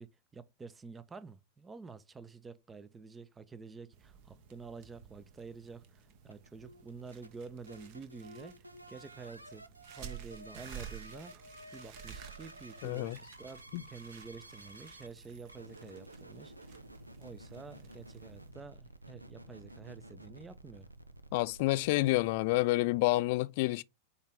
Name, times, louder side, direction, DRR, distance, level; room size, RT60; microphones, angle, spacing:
voice 1, 0.0-8.6 8.9-9.7 9.9-11.4 11.7-16.5 17.2-20.9, right 4 dB, 15° right, 0.7 m, -49 dB
sound 1, 3.9-18.5, right 9 dB, 45° right, 1.3 m, -53 dB
sound 2, 6.3-22.6, right 1 dB, 85° right, 0.6 m, -53 dB
voice 2, 12.8-13.2 13.7-13.8 21.3-23.8, left 19 dB, 50° left, 0.4 m, -29 dB
8.2 x 3.2 x 3.7 m
figure-of-eight pair, 90°, 0 cm